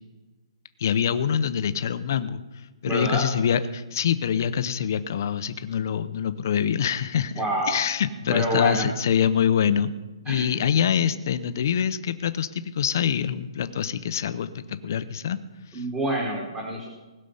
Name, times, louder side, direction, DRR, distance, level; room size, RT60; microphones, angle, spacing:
voice 1, 0.8-2.4 2.8-7.4 7.7-9.9 10.3-15.4, left 8 dB, 30° left, 13 dB, 0.6 m, -25 dB
voice 2, 2.8-3.3 7.3-7.7 8.3-8.9 10.3-10.6 15.7-16.9, right 1 dB, 10° right, -3 dB, 1.3 m, -27 dB
19.5 x 6.6 x 5.6 m, 1.2 s
hypercardioid pair, 180°, 3 cm